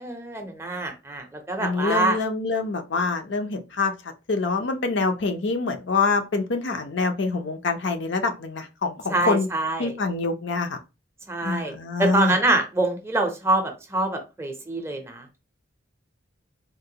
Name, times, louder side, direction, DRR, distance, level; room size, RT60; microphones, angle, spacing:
voice 1, 0.0-2.2 9.1-9.9 11.3-11.7 12.0-15.4, right 2 dB, 15° right, 0.5 m, -25 dB
voice 2, 1.6-3.9 4.3-9.5 9.8-10.8 11.4-12.3, left 4 dB, 65° left, 0.5 m, -25 dB
3.8 x 2.1 x 2.7 m
head